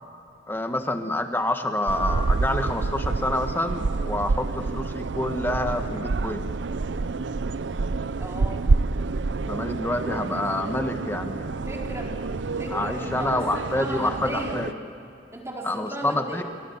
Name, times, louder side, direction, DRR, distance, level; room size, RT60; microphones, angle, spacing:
voice 1, 0.5-6.5 9.5-11.6 12.7-14.7 15.6-16.4, left 1 dB, 10° left, 6 dB, 1.3 m, -27 dB
sound 1, 1.9-14.7, right 3 dB, 85° right, 0.6 m, -28 dB
Piano, 2.0-3.9, left 8 dB, 30° left, 3.9 m, -47 dB
voice 2, 8.2-8.7 11.6-12.2 12.6-14.6 15.3-16.4, right 1 dB, 15° right, -1 dB, 4.1 m, -35 dB
29.0 x 24.0 x 7.2 m, 2.7 s
head